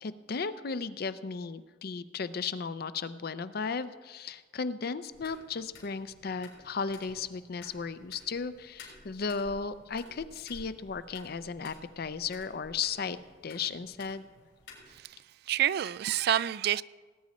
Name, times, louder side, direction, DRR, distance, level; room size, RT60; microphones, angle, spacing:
voice 1, 0.0-13.2 13.4-14.3, left 5 dB, 55° left, 0.5 m, -35 dB
sound 1, 5.1-15.0, left 2 dB, 85° left, 4.1 m, -54 dB
voice 2, 15.5-16.8, right 11 dB, 60° right, 0.3 m, -28 dB
18.5 x 9.3 x 4.2 m
head